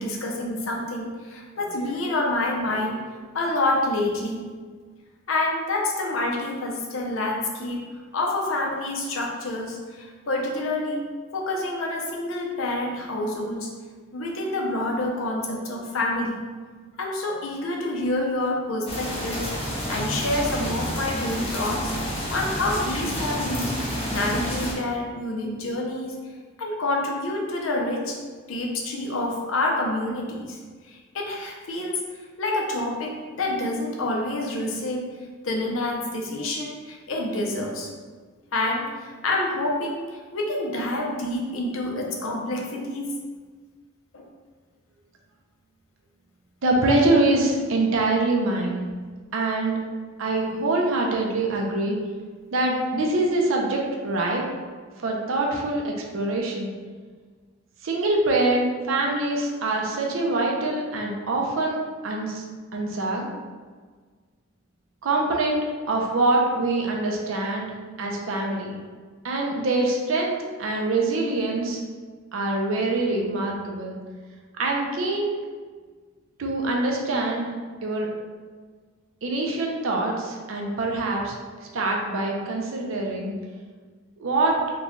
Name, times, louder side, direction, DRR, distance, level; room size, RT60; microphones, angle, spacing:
voice 1, 0.0-3.0 3.3-4.4 5.3-7.8 8.1-11.0 11.3-13.7 14.1-16.4 17.0-21.9 22.3-23.8 24.1-26.2 26.6-28.2 28.5-30.6 30.9-32.0 32.4-35.1 35.4-37.9 38.5-43.1 44.1-44.2, left 2 dB, 85° left, 0 dB, 0.6 m, -27 dB
sound 1, 18.9-24.7, equal, 30° left, 0.7 m, -29 dB
voice 2, 46.6-48.8 49.3-49.8 50.2-52.0 52.5-54.4 55.0-56.7 57.8-61.8 62.0-62.4 62.7-63.3 65.0-65.6 65.9-67.7 68.0-68.8 69.2-71.8 72.3-74.0 74.6-75.3 76.4-77.5 77.8-78.1 79.2-81.3 81.7-83.3 84.2-84.5, right 2 dB, 75° right, -1 dB, 0.6 m, -24 dB
3.8 x 2.2 x 3.0 m, 1.5 s
head